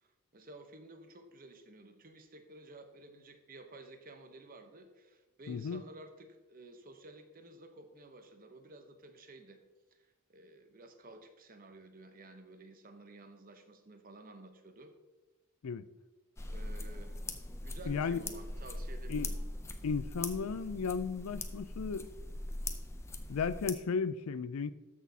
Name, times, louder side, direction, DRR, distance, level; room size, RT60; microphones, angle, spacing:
voice 1, 0.0-9.6 9.9-14.9 16.4-17.2 17.6-19.4, right 2 dB, 40° right, 0.8 m, -53 dB
voice 2, 5.5-5.8 15.6-15.8 17.9-18.2 19.1-19.3 19.8-22.1 23.3-24.7, left 5 dB, 75° left, 0.4 m, -34 dB
sound 1, 16.4-23.7, left 2 dB, 10° left, 0.4 m, -41 dB
13.0 x 6.1 x 2.8 m
head